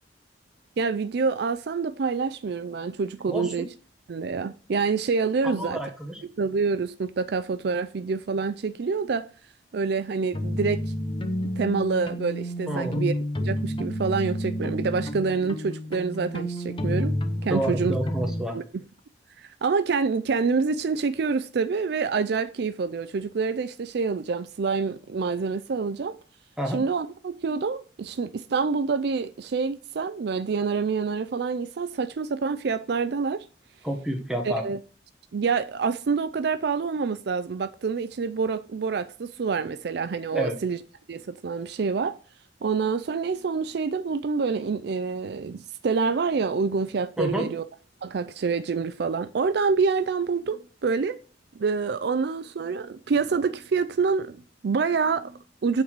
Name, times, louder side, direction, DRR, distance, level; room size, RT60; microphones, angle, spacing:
voice 1, 0.8-3.7 4.1-5.8 6.4-9.3 9.7-10.8 11.6-13.1 13.4-17.2 17.4-18.0 18.5-18.6 19.4-26.2 26.7-33.4 34.5-34.8 35.3-40.8 41.1-42.2 42.6-47.6 48.0-51.2 51.6-55.8, right 5 dB, 65° right, 0.4 m, -27 dB
voice 2, 3.3-3.7 5.4-6.2 12.7-13.0 17.5-18.6 26.6-26.8 33.8-34.6 40.3-40.6 47.2-47.5, right 1 dB, 5° right, 1.5 m, -29 dB
sound 1, 10.3-18.4, equal, 30° left, 0.8 m, -30 dB
8.7 x 4.0 x 6.1 m
head